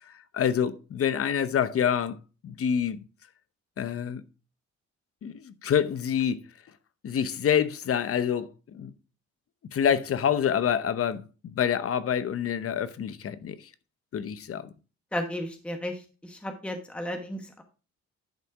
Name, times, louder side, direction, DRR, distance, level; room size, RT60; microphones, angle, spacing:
voice 1, 0.0-2.2 2.4-3.0 3.8-4.2 5.2-6.4 7.0-8.9 9.7-13.7 14.1-14.7, left 8 dB, 50° left, 0.9 m, -27 dB
voice 2, 15.1-17.6, equal, 5° left, 1.2 m, -34 dB
10.5 x 4.2 x 4.8 m
cardioid pair, 90°, 30 cm